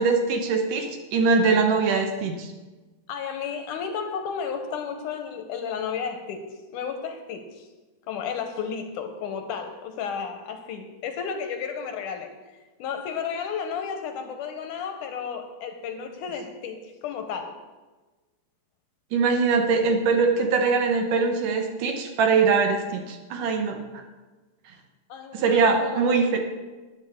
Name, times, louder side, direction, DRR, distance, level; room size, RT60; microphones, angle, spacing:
voice 1, 0.0-2.5 19.1-23.8 25.3-26.4, right 4 dB, 70° right, 4 dB, 2.5 m, -22 dB
voice 2, 3.1-7.7 8.1-12.4 12.8-17.6 25.1-26.4, left 6 dB, 75° left, 5 dB, 2.2 m, -33 dB
13.0 x 10.5 x 3.6 m, 1.2 s
omnidirectional pair, 4.0 m